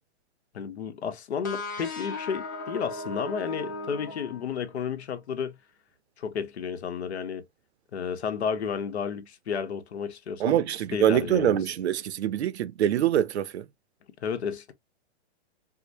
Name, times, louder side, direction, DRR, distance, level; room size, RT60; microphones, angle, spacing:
voice 1, 0.5-5.6 6.2-7.4 7.9-10.6 10.9-11.6 14.2-14.7, left 7 dB, 75° left, 1.0 m, -32 dB
sound 1, 1.4-5.0, left 2 dB, 20° left, 0.4 m, -37 dB
voice 2, 10.4-13.6, right 11 dB, 75° right, 0.7 m, -24 dB
4.8 x 2.1 x 2.6 m
hypercardioid pair, 170°, 33 cm